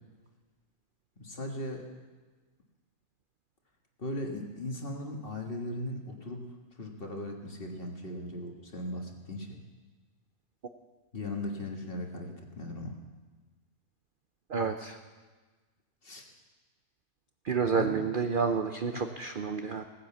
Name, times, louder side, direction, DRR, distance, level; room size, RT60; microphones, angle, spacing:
voice 1, 1.2-1.9 4.0-6.5 6.8-9.6 11.1-13.0 16.0-16.2 17.6-18.0 18.4-18.5 18.9-19.1, left 1 dB, 35° left, 1 dB, 1.9 m, -38 dB
voice 2, 14.5-15.0 17.4-19.8, right 5 dB, 50° right, 6 dB, 0.7 m, -29 dB
18.0 x 10.0 x 7.3 m, 1.3 s
omnidirectional pair, 1.6 m